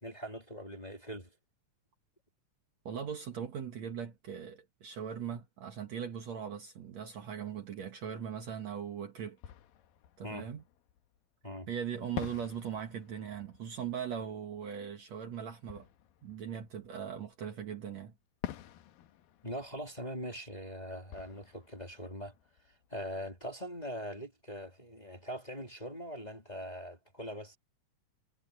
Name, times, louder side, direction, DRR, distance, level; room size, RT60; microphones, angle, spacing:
voice 1, 0.0-1.3 10.2-10.5 11.4-11.7 19.4-22.3 22.9-27.6, equal, 10° left, 2.9 m, -42 dB
voice 2, 2.9-9.4 10.2-10.6 11.7-15.9 16.2-18.1, right 8 dB, 55° right, 2.5 m, -40 dB
Fireworks, 8.8-8.9 9.4-11.4 12.2-17.5 18.4-23.2, left 11 dB, 80° left, 2.9 m, -48 dB
omnidirectional pair, 4.1 m